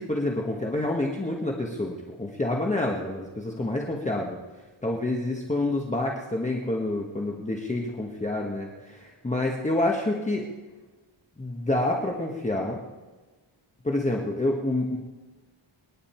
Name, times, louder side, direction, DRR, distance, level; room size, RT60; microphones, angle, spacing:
voice 1, 0.0-4.4 4.8-10.5 11.4-12.8 13.8-15.0, left 2 dB, 15° left, -1 dB, 1.2 m, -28 dB
27.5 x 9.9 x 4.4 m, 1.2 s
wide cardioid pair, 175°, 48 cm